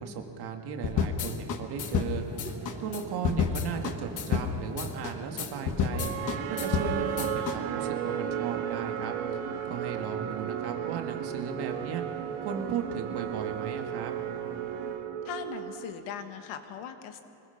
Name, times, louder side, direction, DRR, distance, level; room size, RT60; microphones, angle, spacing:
voice 1, 0.0-2.2 2.8-6.1 6.5-9.1 9.7-12.0 12.4-14.1, right 6 dB, 50° right, 4 dB, 2.0 m, -36 dB
sound 1, 0.8-7.6, left 6 dB, 40° left, 1.2 m, -30 dB
sound 2, 1.8-7.3, right 2 dB, 15° right, 2.2 m, -45 dB
sound 3, 5.9-16.1, right 9 dB, 85° right, 1.7 m, -34 dB
voice 2, 15.2-17.2, left 8 dB, 90° left, 7 dB, 1.7 m, -39 dB
25.0 x 20.5 x 5.9 m, 2.7 s
cardioid pair, 175°, 48 cm